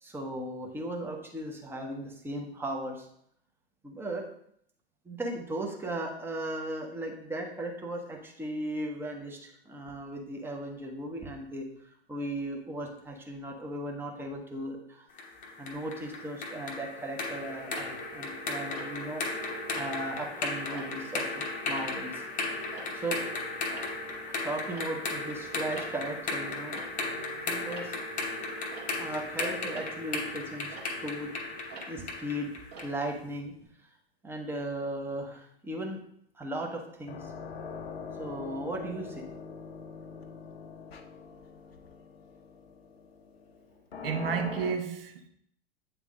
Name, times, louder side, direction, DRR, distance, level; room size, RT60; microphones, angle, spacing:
voice 1, 0.0-3.1 3.8-4.3 5.0-15.1 15.6-21.3 21.7-22.2 22.9-23.2 24.3-26.8 27.4-27.9 29.0-31.3 31.8-32.5 32.8-33.5 34.2-36.0 36.3-37.3 38.2-39.2, right 1 dB, 5° right, 0.9 m, -37 dB
sound 1, 15.2-33.0, left 3 dB, 25° left, 0.9 m, -36 dB
Tick-tock, 17.7-19.3 19.7-20.1 20.6-23.3 23.6-33.7, right 3 dB, 35° right, 1.5 m, -50 dB
sound 2, 37.0-44.8, left 5 dB, 65° left, 0.8 m, -43 dB
voice 2, 44.0-45.3, right 7 dB, 60° right, 0.9 m, -31 dB
8.2 x 3.5 x 3.6 m
figure-of-eight pair, 100°, 32 cm